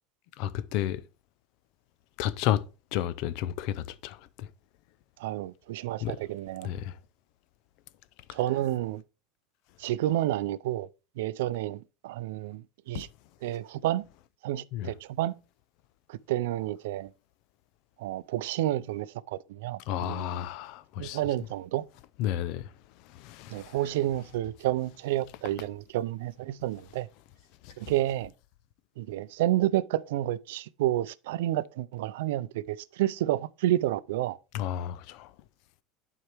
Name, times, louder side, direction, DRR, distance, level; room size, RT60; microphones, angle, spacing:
voice 1, 0.4-1.0 2.2-2.6 2.9-4.5 6.0-6.2 6.6-7.0 8.3-8.4 12.9-13.1 14.7-14.9 19.9-21.2 22.2-22.7 23.0-23.8 27.6-27.9 34.5-35.3, left 12 dB, 55° left, 0.5 m, -32 dB
voice 2, 5.2-6.7 8.3-9.0 9.8-10.9 11.2-13.1 13.4-14.0 14.4-15.3 16.1-17.1 18.0-20.2 21.0-21.8 23.5-27.1 27.8-28.3 29.0-34.4, right 14 dB, 85° right, 0.4 m, -30 dB
11.0 x 4.6 x 3.3 m
supercardioid pair, 155°, 0 cm